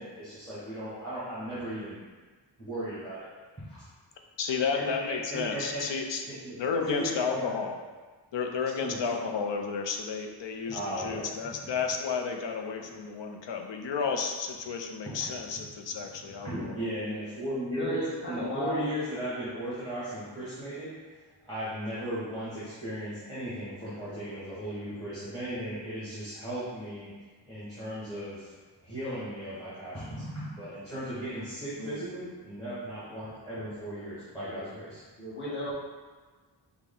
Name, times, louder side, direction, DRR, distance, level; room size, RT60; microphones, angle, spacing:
voice 1, 0.0-2.0 2.6-3.3 3.6-3.8 4.7-5.8 6.3-7.6 8.8-9.0 10.7-11.5 12.8-12.9 15.2-15.4 15.9-16.0 16.3-27.1 27.4-28.5 28.8-35.0, equal, 10° left, -13 dB, 1.4 m, -36 dB
voice 2, 4.4-6.2 6.5-7.7 8.3-16.8, left 5 dB, 80° left, 3 dB, 0.6 m, -32 dB
voice 3, 17.7-18.8 31.8-32.1 34.4-34.7 35.2-35.7, equal, 25° left, -8 dB, 1.3 m, -35 dB
6.0 x 2.2 x 3.7 m, 1.4 s
wide cardioid pair, 150°, 43 cm